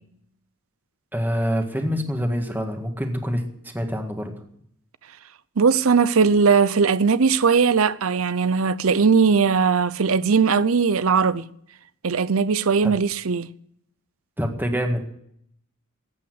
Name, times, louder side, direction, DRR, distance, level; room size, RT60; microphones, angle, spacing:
voice 1, 1.1-4.4 12.8-12.9 14.4-15.1, equal, 10° right, 1.8 m, -26 dB
voice 2, 5.6-11.5 12.0-13.5, right 5 dB, 65° right, 0.6 m, -19 dB
14.0 x 8.6 x 9.6 m
head